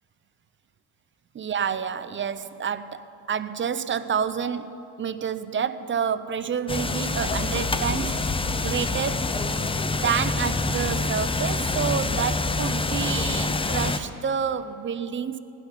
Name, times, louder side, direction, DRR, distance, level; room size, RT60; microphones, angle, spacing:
voice 1, 1.3-9.3 9.9-15.4, right 7 dB, 30° right, 13 dB, 0.6 m, -29 dB
sound 1, 6.7-14.0, left 3 dB, 15° left, 0.6 m, -26 dB
17.0 x 6.0 x 9.8 m, 3.0 s
cardioid pair, 90°, 41 cm